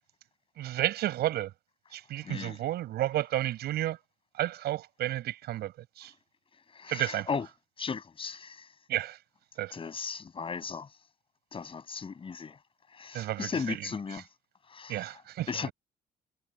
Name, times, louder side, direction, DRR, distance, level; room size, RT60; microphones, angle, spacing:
voice 1, 0.6-1.5 1.9-4.0 4.4-6.1 6.9-7.3 8.9-9.2 9.6-9.7 13.1-13.8 14.9-15.7, right 14 dB, 70° right, 7.6 m, -32 dB
voice 2, 2.2-2.6 6.7-7.5 7.8-8.7 9.7-10.9 11.5-12.6 12.9-14.2 14.7-15.1 15.5-15.7, left 5 dB, 30° left, 6.5 m, -36 dB
cardioid pair, 110°, 17 cm